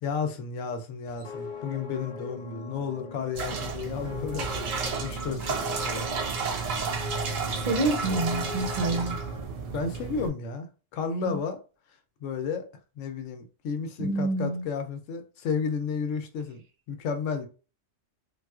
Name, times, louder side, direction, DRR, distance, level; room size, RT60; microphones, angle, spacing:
voice 1, 0.0-6.1 9.7-10.7 10.9-11.6 12.2-12.7 13.0-16.6 16.9-17.5, left 5 dB, 80° left, 0.9 m, -32 dB
sound 1, 1.0-9.4, left 5 dB, 55° left, 0.6 m, -41 dB
sound 2, 3.3-10.3, right 5 dB, 90° right, 1.1 m, -32 dB
voice 2, 7.6-9.2 11.3-11.4 14.0-14.7, right 2 dB, 45° right, 0.5 m, -27 dB
3.6 x 2.3 x 2.3 m
omnidirectional pair, 1.3 m